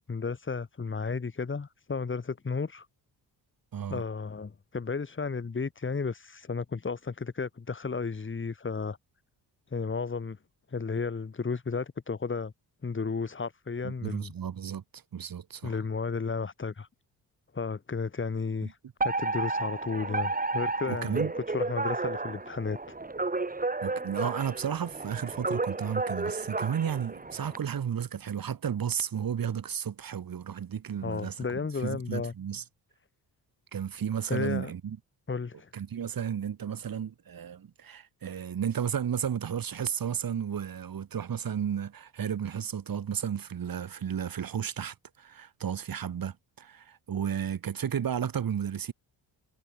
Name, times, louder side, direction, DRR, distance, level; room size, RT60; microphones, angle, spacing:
voice 1, 0.0-2.9 3.9-9.0 9.7-10.4 10.7-12.5 12.8-14.3 15.6-16.9 17.5-18.8 19.0-22.9 31.0-32.3 34.3-34.7 35.3-35.7, left 4 dB, 30° left, 3.2 m, -33 dB
voice 2, 13.8-15.8 20.9-21.3 23.8-31.4 31.8-32.6 33.7-35.0 35.7-48.9, right 8 dB, 55° right, 6.1 m, -33 dB
Alarm, 19.0-27.6, right 3 dB, 20° right, 6.9 m, -32 dB
cardioid pair, 95°, 40 cm